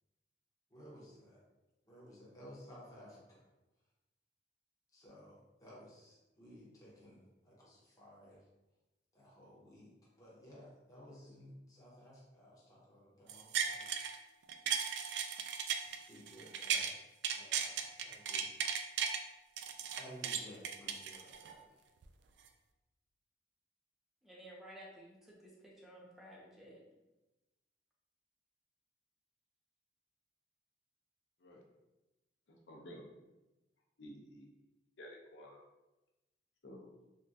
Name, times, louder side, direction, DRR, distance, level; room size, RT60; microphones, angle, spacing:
voice 1, 0.7-1.4 1.8-3.4 4.9-8.4 9.1-13.9 15.3-15.4 15.8-16.9 17.3-18.5 19.9-21.8, equal, 20° left, -6 dB, 0.9 m, -56 dB
sound 1, 13.3-14.2 14.5-16.9 17.2-19.2 19.6-21.6 22.0-22.1, right 7 dB, 75° right, 0.3 m, -36 dB
voice 2, 24.2-26.8, right 1 dB, ahead, -5 dB, 0.5 m, -54 dB
voice 3, 32.5-33.1 34.0-34.5 35.0-35.6 36.6-36.9, equal, 80° left, 0 dB, 0.6 m, -52 dB
3.6 x 2.2 x 2.6 m, 1.0 s
head